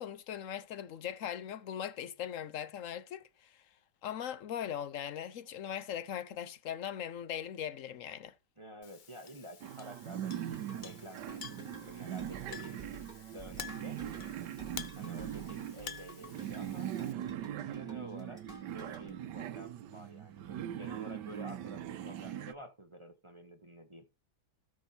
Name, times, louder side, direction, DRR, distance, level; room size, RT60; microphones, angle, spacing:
voice 1, 0.0-3.6 4.0-8.3, left 9 dB, 60° left, 0.9 m, -40 dB
voice 2, 8.6-12.8 13.3-14.0 15.0-16.9 17.6-24.0, equal, 20° right, 1.0 m, -50 dB
Chink clink, 8.8-17.1, left 7 dB, 80° left, 0.4 m, -50 dB
sound 1, 9.6-22.5, right 10 dB, 85° right, 1.3 m, -41 dB
sound 2, 10.5-19.1, right 2 dB, ahead, 3.4 m, -53 dB
16.5 x 6.2 x 2.8 m
omnidirectional pair, 1.8 m